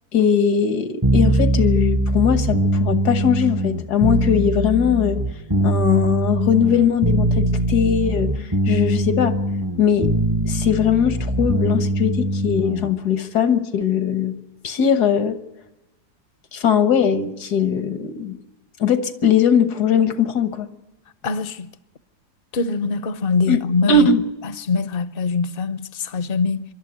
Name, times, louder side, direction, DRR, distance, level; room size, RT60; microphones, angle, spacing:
voice 1, 0.1-5.2 5.6-9.3 9.8-10.1 10.5-14.4 14.6-15.4 16.5-18.4 18.8-20.7 23.5-23.6 23.9-24.2, left 7 dB, 80° left, 1.8 m, -20 dB
sound 1, 1.0-12.9, right 1 dB, 20° right, 0.7 m, -21 dB
voice 2, 21.2-21.7 22.5-24.1 24.4-26.6, left 4 dB, 45° left, 0.8 m, -23 dB
25.5 x 12.0 x 9.4 m
omnidirectional pair, 1.7 m